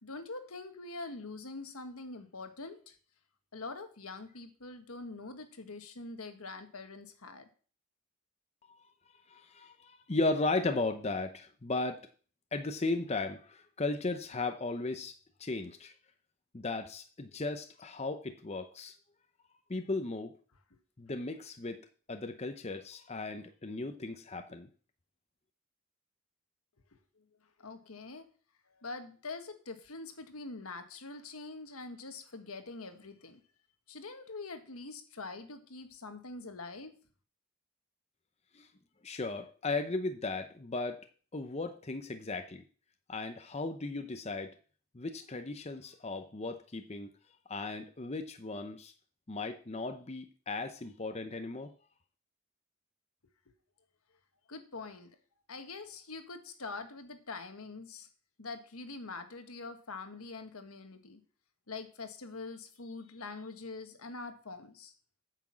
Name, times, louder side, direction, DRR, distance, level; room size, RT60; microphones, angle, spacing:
voice 1, 0.0-3.0 3.5-7.5 27.2-27.3 27.6-28.3 28.7-33.4 33.9-36.9 54.5-55.1 55.5-58.1 58.4-61.2 61.7-64.9, left 3 dB, 75° left, 8 dB, 1.5 m, -44 dB
voice 2, 9.3-12.1 12.5-15.1 15.4-15.9 16.5-18.9 19.7-20.3 21.0-24.7 38.5-38.7 39.0-41.1 41.3-42.6 43.1-44.6 44.9-47.1 47.5-48.9 49.3-51.7, left 3 dB, 30° left, 7 dB, 0.7 m, -36 dB
8.9 x 6.0 x 7.4 m, 0.42 s
head